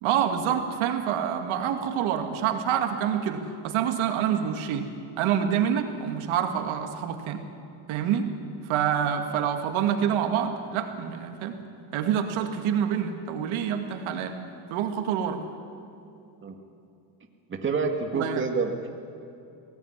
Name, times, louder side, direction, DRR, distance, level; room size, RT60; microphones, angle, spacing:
voice 1, 0.0-4.9 5.2-7.4 7.9-8.3 8.7-11.6 11.9-14.4 14.7-15.4 18.1-18.4, right 8 dB, 75° right, 5 dB, 2.3 m, -27 dB
voice 2, 17.5-18.9, right 4 dB, 25° right, 3 dB, 1.9 m, -28 dB
21.5 x 18.0 x 9.9 m, 2.7 s
cardioid pair, 140°, 49 cm